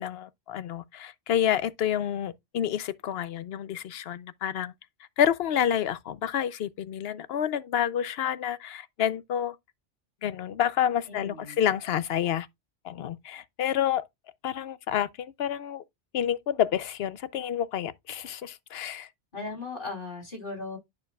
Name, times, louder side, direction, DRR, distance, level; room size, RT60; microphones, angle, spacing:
voice 1, 0.0-4.7 5.2-9.6 10.2-12.5 12.8-14.1 14.4-15.8 16.1-19.1, left 10 dB, 60° left, 0.8 m, -29 dB
voice 2, 11.1-11.6 19.3-20.8, left 3 dB, 45° left, 3.5 m, -37 dB
9.4 x 6.7 x 2.3 m
omnidirectional pair, 1.2 m